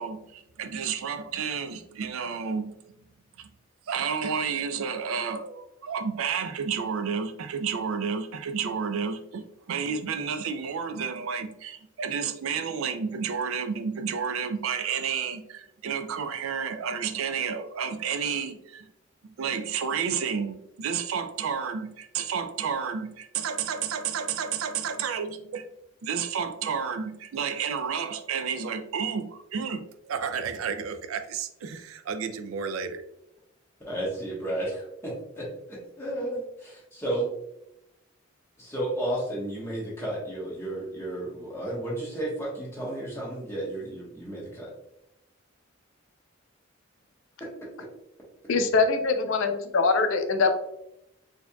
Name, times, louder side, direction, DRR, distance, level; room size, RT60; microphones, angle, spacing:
voice 1, 0.0-2.7 3.4-3.5 3.9-18.9 19.2-25.6 26.0-33.0, right 6 dB, 85° right, 8 dB, 0.4 m, -31 dB
voice 2, 33.9-37.3 38.6-44.7, right 1 dB, 10° left, -6 dB, 1.1 m, -33 dB
voice 3, 48.5-50.6, left 4 dB, 75° left, 7 dB, 0.5 m, -23 dB
4.3 x 2.8 x 2.2 m, 0.82 s
head